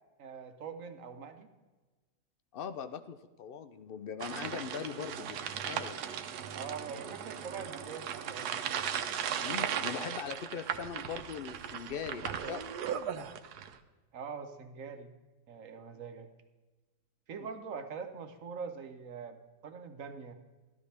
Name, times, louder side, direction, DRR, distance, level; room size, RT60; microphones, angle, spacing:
voice 1, 0.2-1.5 6.5-8.6 14.1-15.1 15.5-16.3 17.3-20.3, right 6 dB, 60° right, 8 dB, 1.1 m, -43 dB
voice 2, 2.5-6.0 6.5-6.6 9.4-12.7, left 7 dB, 80° left, 11 dB, 0.5 m, -41 dB
sound 1, 4.2-13.8, right 8 dB, 85° right, 1.3 m, -37 dB
13.0 x 12.5 x 3.3 m, 1.3 s
omnidirectional pair, 1.6 m